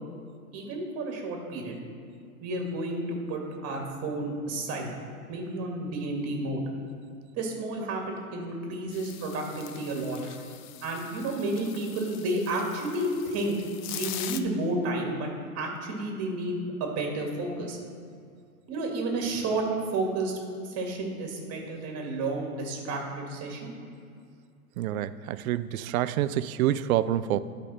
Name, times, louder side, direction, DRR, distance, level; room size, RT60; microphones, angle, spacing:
voice 1, 0.5-1.8 2.4-4.9 5.3-6.6 7.4-10.5 10.8-13.5 13.9-15.3 15.6-17.8 18.7-19.6 19.9-20.4 20.7-23.7, right 2 dB, 35° right, 1 dB, 2.2 m, -31 dB
sound 1, 8.9-14.4, left 12 dB, 35° left, 0.4 m, -42 dB
voice 2, 24.8-27.4, right 12 dB, 70° right, 15 dB, 0.5 m, -27 dB
12.0 x 5.2 x 4.3 m, 2.3 s
hypercardioid pair, 125°, 45 cm